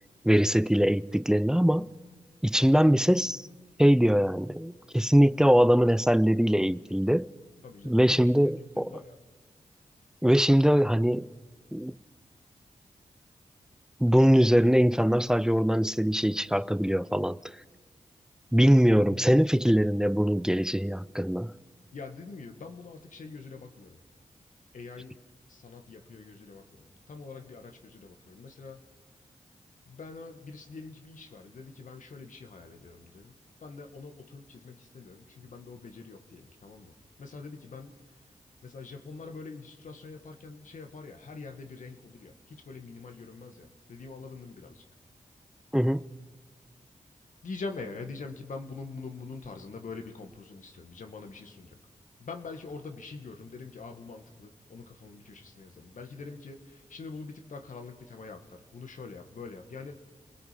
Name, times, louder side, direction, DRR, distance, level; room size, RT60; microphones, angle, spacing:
voice 1, 0.2-1.9 2.4-3.4 3.8-7.3 7.8-9.0 10.2-11.3 11.7-12.0 14.0-17.4 18.5-21.5 45.7-46.1, equal, 5° right, 0.6 m, -22 dB
voice 2, 7.6-9.2 21.9-24.0 24.7-25.2 25.5-28.8 29.9-33.4 33.6-38.0 38.6-44.8 47.4-51.8 52.2-60.0, left 4 dB, 75° left, 1.9 m, -44 dB
30.0 x 19.5 x 5.3 m
cardioid pair, 45°, 13 cm